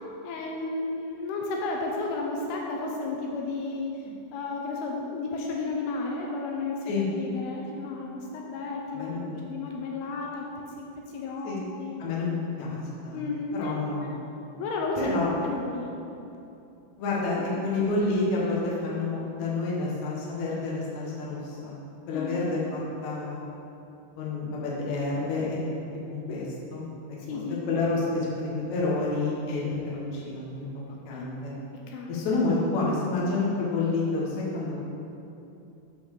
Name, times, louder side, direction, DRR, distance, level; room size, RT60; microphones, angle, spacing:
voice 1, 0.2-4.0 4.3-9.2 9.5-10.5 10.8-10.9 11.1-12.0 13.1-13.8 14.6-15.9 17.4-17.5 22.1-22.5 26.2-26.4 27.3-27.9 31.1-31.3 31.9-32.2, left 3 dB, 80° left, -1 dB, 2.8 m, -33 dB
voice 2, 8.9-9.3 11.4-11.6 12.0-14.2 15.0-15.3 17.0-21.8 22.1-23.4 24.2-25.6 26.1-26.5 26.7-26.9 27.3-30.7 31.1-31.5 32.1-34.8, left 3 dB, 60° left, -5 dB, 2.3 m, -29 dB
8.7 x 4.4 x 6.7 m, 2.8 s
omnidirectional pair, 4.7 m